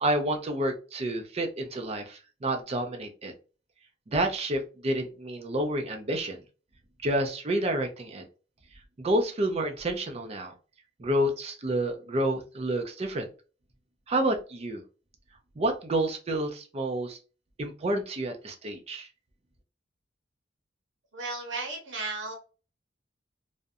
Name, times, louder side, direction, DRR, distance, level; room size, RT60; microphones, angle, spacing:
voice 1, 0.0-3.3 4.1-6.4 7.0-8.2 9.0-10.5 11.0-13.3 14.1-14.8 15.6-17.2 17.6-19.1, right 1 dB, 35° right, 4 dB, 0.4 m, -29 dB
voice 2, 21.1-22.3, right 3 dB, 85° right, 1 dB, 1.0 m, -34 dB
2.4 x 2.1 x 2.6 m, 0.34 s
head